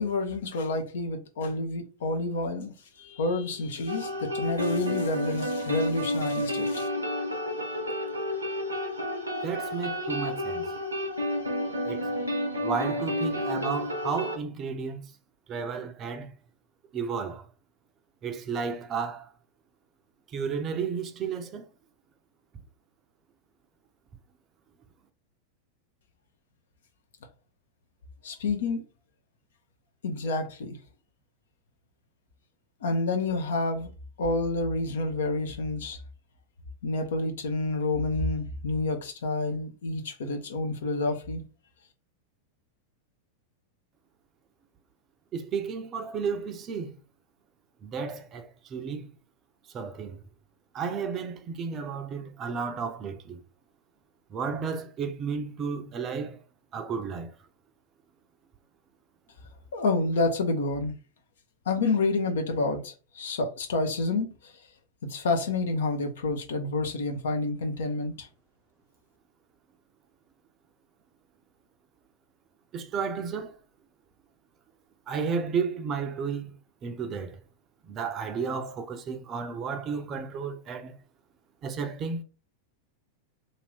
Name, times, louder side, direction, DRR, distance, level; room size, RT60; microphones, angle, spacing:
voice 1, 0.0-6.9 28.2-28.8 30.0-30.8 32.8-33.9 34.2-36.0 36.8-41.4 59.7-60.9 61.7-64.3 65.0-68.3, left 2 dB, 60° left, 0.7 m, -29 dB
sound 1, 3.9-14.4, left 1 dB, 80° right, 0.7 m, -30 dB
voice 2, 9.4-10.6 11.9-12.1 12.6-15.0 15.5-16.3 16.9-17.4 18.2-19.3 20.3-21.7 45.3-46.9 47.8-49.1 49.7-50.2 50.7-53.4 54.3-56.4 56.7-57.3 72.7-73.6 75.1-76.6 76.8-77.4 77.9-81.0 81.6-82.2, right 5 dB, 30° right, 0.5 m, -32 dB
2.6 x 2.5 x 3.3 m
figure-of-eight pair, 90°, 0 cm